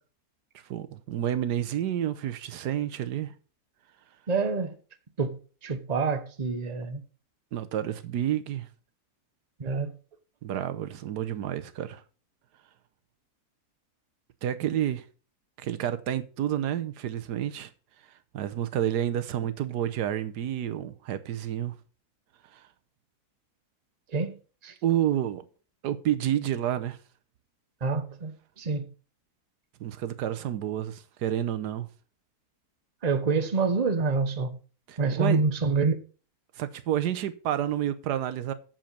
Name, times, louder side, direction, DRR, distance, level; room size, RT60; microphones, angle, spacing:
voice 1, 0.7-3.3 7.5-8.7 10.4-12.0 14.4-15.0 15.6-17.7 18.3-21.7 22.5-22.6 24.8-25.4 25.8-27.0 29.8-31.9 34.9-35.4 36.6-38.5, right 11 dB, 85° right, 1.4 m, -29 dB
voice 2, 4.3-4.8 5.2-7.0 9.6-9.9 24.1-24.4 24.6-24.7 27.8-28.8 33.0-34.6 35.0-35.9, right 4 dB, 30° right, 1.0 m, -27 dB
7.6 x 7.3 x 5.6 m
omnidirectional pair, 1.7 m